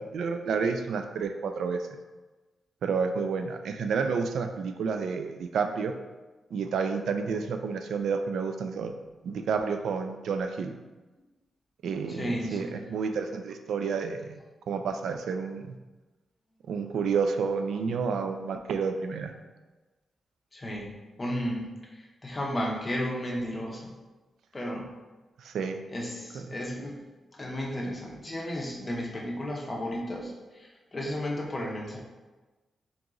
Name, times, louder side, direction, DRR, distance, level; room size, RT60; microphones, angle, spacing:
voice 1, 0.0-1.8 2.8-5.9 6.5-8.9 9.2-10.7 11.8-14.3 14.7-15.8 16.7-19.3 25.4-25.8, right 5 dB, 85° right, 6 dB, 0.3 m, -30 dB
voice 2, 12.1-12.8 17.7-17.8 20.5-23.9 24.5-24.9 25.9-27.0 27.4-32.0, equal, 20° left, -2 dB, 0.6 m, -34 dB
3.7 x 2.9 x 3.7 m, 1.2 s
wide cardioid pair, 175°, 0 cm